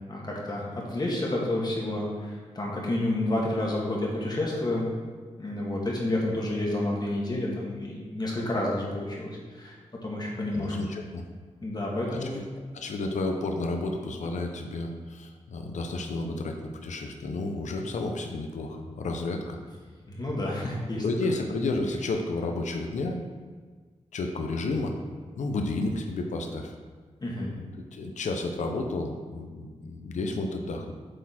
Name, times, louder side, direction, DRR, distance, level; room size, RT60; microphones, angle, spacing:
voice 1, 0.1-4.9 5.4-9.8 10.0-10.7 11.6-12.4 20.1-21.0 27.2-27.5, left 1 dB, 35° left, -3 dB, 1.7 m, -30 dB
voice 2, 10.5-11.2 12.1-12.5 12.7-19.6 21.0-23.2 24.1-24.9 25.4-26.7 27.5-27.7 27.9-30.9, left 2 dB, 80° left, 3 dB, 0.7 m, -31 dB
7.9 x 4.2 x 4.3 m, 1.5 s
wide cardioid pair, 95°, 12 cm